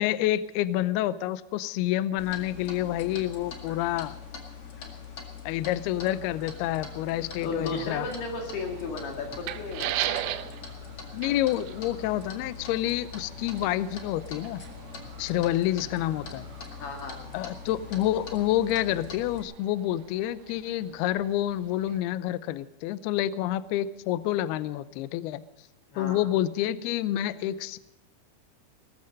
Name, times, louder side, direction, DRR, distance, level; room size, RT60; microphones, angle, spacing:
voice 1, 0.0-4.2 5.5-8.1 11.1-14.6 15.2-16.5 17.3-25.4 26.0-27.8, left 13 dB, 85° left, 15 dB, 2.2 m, -28 dB
Clock, 2.2-19.4, left 6 dB, 45° left, 2.0 m, -43 dB
sound 1, 5.9-18.0, right 6 dB, 65° right, 2.9 m, -52 dB
voice 2, 7.4-10.2 16.8-17.2 25.9-26.3, left 3 dB, 65° left, 2 dB, 3.8 m, -35 dB
sound 2, 7.6-22.0, right 13 dB, 85° right, 3.3 m, -40 dB
19.5 x 14.0 x 5.2 m, 0.93 s
omnidirectional pair, 5.4 m